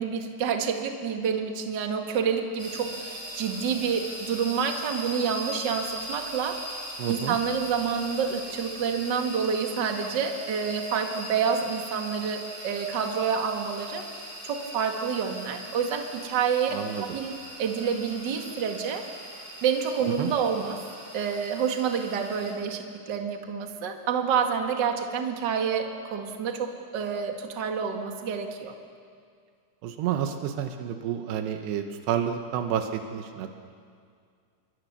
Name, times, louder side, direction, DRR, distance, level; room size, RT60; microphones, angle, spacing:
voice 1, 0.0-14.0 14.4-16.7 17.0-17.3 17.6-19.0 19.6-20.8 21.1-28.7, right 6 dB, 45° right, 3 dB, 1.5 m, -28 dB
sound 1, 2.6-22.5, equal, 20° right, 6.1 m, -40 dB
voice 2, 7.0-7.4 16.7-17.1 20.2-20.3 29.8-33.6, right 9 dB, 85° right, 6 dB, 3.2 m, -30 dB
28.0 x 23.0 x 6.8 m, 2.2 s
omnidirectional pair, 4.7 m